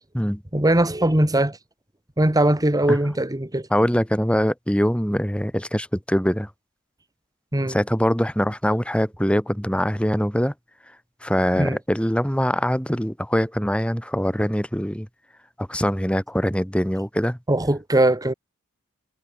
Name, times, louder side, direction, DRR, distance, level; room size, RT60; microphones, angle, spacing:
voice 1, 0.5-1.6 2.2-3.7 7.5-7.8 11.6-11.8 17.5-18.3, right 1 dB, 15° right, 1.9 m, -20 dB
voice 2, 3.7-6.5 7.6-10.5 11.2-15.1 15.6-17.4, equal, 5° left, 3.5 m, -23 dB
head